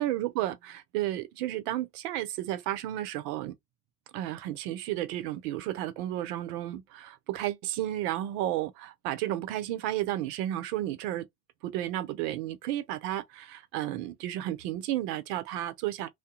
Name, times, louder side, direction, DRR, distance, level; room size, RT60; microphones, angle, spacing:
voice 1, 0.0-3.5 4.1-11.3 11.6-16.1, right 13 dB, 75° right, 0.6 m, -32 dB
2.3 x 2.1 x 2.7 m
hypercardioid pair, 65°, 48 cm